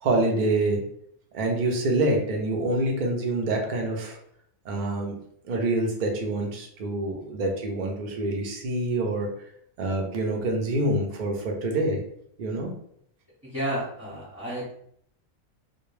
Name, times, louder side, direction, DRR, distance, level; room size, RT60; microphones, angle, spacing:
voice 1, 0.0-0.9 1.3-4.2 4.6-5.2 5.4-9.3 9.8-12.0 12.4-12.7, right 2 dB, 75° right, 1 dB, 0.4 m, -26 dB
voice 2, 13.5-14.7, right 1 dB, 15° right, -10 dB, 0.8 m, -31 dB
2.2 x 2.2 x 3.1 m, 0.68 s
omnidirectional pair, 1.4 m